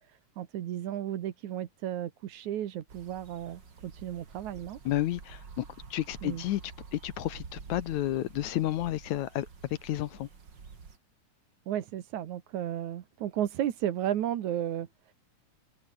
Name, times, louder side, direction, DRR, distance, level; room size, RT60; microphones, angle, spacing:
voice 1, 0.4-4.8 6.2-6.4 11.7-14.9, right 11 dB, 70° right, 2.6 m, -33 dB
sound 1, 2.9-11.0, right 5 dB, 35° right, 3.0 m, -49 dB
voice 2, 4.9-5.7 5.9-6.6 6.9-10.3, left 14 dB, 70° left, 2.1 m, -31 dB
omnidirectional pair, 3.7 m